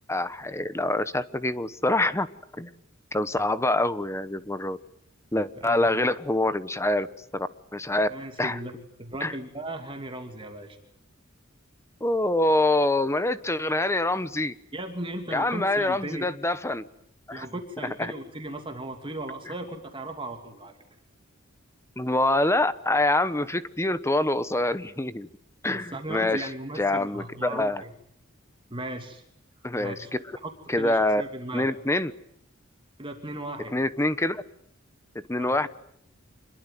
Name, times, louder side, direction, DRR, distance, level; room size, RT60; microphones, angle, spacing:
voice 1, 0.1-2.3 2.6-2.7 3.1-4.8 5.3-7.1 7.3-8.1 8.4-8.6 9.2-9.3 12.0-14.5 15.3-16.8 17.3-17.5 18.0-18.1 19.5-19.6 22.0-25.3 25.6-26.5 26.8-27.8 29.6-30.4 30.7-31.2 31.5-32.1 33.7-34.4 35.3-35.7, left 2 dB, 15° left, 14 dB, 1.1 m, -25 dB
voice 2, 5.6-5.9 8.1-8.7 9.0-10.8 14.7-16.3 17.3-20.7 25.7-27.9 28.7-29.2 29.8-30.1 30.4-31.7 33.0-33.7 35.4-35.7, right 1 dB, 25° right, 4 dB, 2.8 m, -37 dB
26.5 x 22.0 x 9.3 m, 0.71 s
head